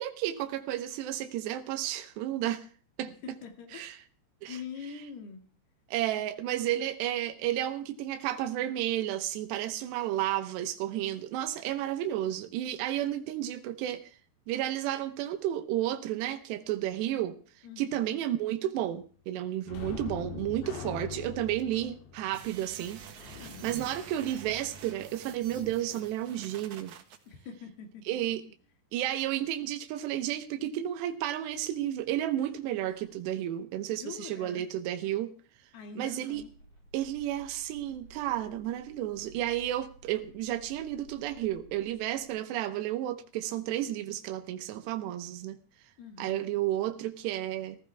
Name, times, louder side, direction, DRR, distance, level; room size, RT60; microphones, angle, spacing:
voice 1, 0.0-2.7 3.0-3.1 3.7-4.0 4.4-4.6 5.9-14.1 14.5-17.4 17.8-26.9 28.1-28.4 28.9-35.3 36.0-36.4 36.9-45.6 46.2-47.8, right 12 dB, 85° right, 7 dB, 3.1 m, -32 dB
voice 2, 3.2-4.0 4.5-5.5 6.5-6.9 17.6-18.1 23.4-23.9 27.3-28.1 33.9-34.7 35.7-36.5 46.0-46.5, left 6 dB, 70° left, 5 dB, 4.1 m, -44 dB
sound 1, 19.7-25.0 32.4-32.5 32.9-33.1, left 7 dB, 90° left, 3.6 m, -43 dB
sound 2, 22.3-27.2, right 8 dB, 60° right, 2.1 m, -48 dB
sound 3, 36.3-42.3, right 2 dB, 40° left, 4.9 m, -55 dB
16.0 x 15.5 x 3.4 m, 0.41 s
omnidirectional pair, 4.8 m